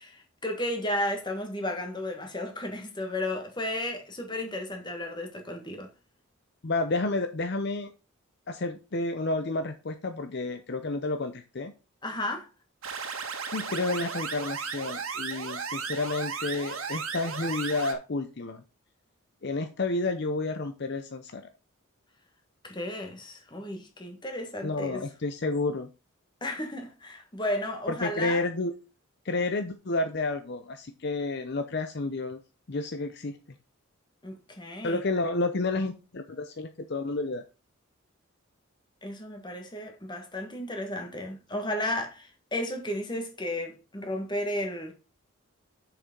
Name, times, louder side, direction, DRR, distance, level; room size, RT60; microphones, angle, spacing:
voice 1, 0.0-5.9 12.0-12.5 22.6-25.1 26.4-28.4 34.2-35.0 39.0-44.9, left 1 dB, 20° left, 1.6 m, -33 dB
voice 2, 6.6-7.9 8.5-11.7 13.5-18.6 19.4-21.4 24.6-25.9 27.9-28.7 29.2-32.4 32.7-33.4 34.8-37.4, left 2 dB, 50° left, 0.6 m, -30 dB
sound 1, 12.8-17.9, right 5 dB, 80° right, 1.6 m, -35 dB
6.9 x 5.9 x 5.2 m
head